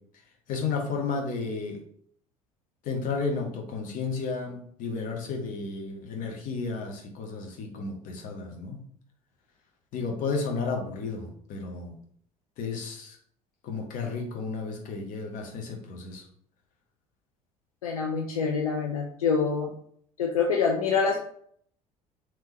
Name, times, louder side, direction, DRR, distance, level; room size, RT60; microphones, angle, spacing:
voice 1, 0.5-1.8 2.8-8.8 9.9-11.9 12.6-13.2 13.6-16.2, left 4 dB, 45° left, 1 dB, 1.1 m, -32 dB
voice 2, 17.8-19.7 20.2-21.2, left 5 dB, 75° left, -1 dB, 0.6 m, -26 dB
3.6 x 3.1 x 3.0 m, 0.62 s
figure-of-eight pair, 60°, 18 cm